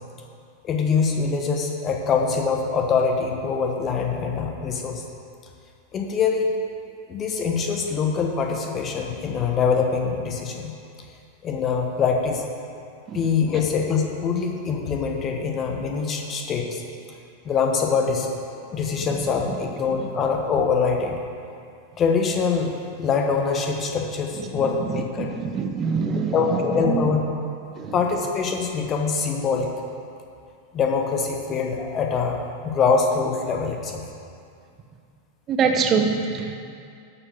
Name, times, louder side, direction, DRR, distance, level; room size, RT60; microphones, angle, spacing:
voice 1, 0.6-5.0 5.9-6.5 7.1-10.7 11.4-12.4 13.1-16.8 17.4-18.3 18.6-21.2 22.0-25.3 26.3-27.2 27.9-29.7 30.7-32.4 32.6-34.0, left 5 dB, 30° left, 2 dB, 1.3 m, -24 dB
voice 2, 25.2-26.6 26.8-27.0 27.8-27.9 35.5-36.6, right 5 dB, 30° right, 4 dB, 0.9 m, -24 dB
12.5 x 4.9 x 7.1 m, 2.4 s
figure-of-eight pair, 90°, 0 cm